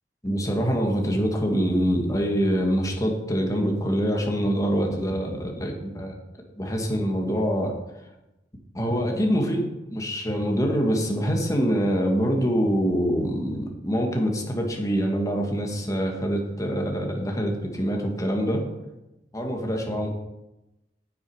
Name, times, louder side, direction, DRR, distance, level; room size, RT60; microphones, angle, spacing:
voice 1, 0.2-6.1 6.6-7.7 8.7-18.6 19.3-20.1, equal, 20° left, 1 dB, 1.8 m, -25 dB
9.3 x 8.5 x 4.9 m, 0.96 s
head